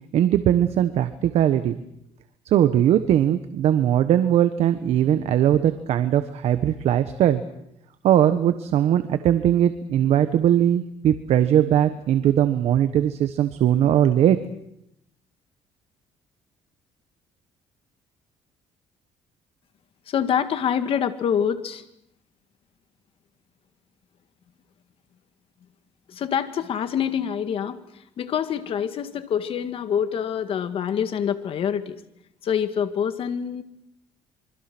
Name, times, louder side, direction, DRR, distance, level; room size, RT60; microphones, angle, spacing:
voice 1, 0.1-1.8 2.4-7.4 8.0-14.4, right 10 dB, 65° right, 10 dB, 1.3 m, -20 dB
voice 2, 20.1-21.8 26.1-27.8 28.2-32.0 32.4-33.6, left 8 dB, 55° left, 10 dB, 1.9 m, -26 dB
26.5 x 24.0 x 6.2 m, 0.80 s
cardioid pair, 115°, 11 cm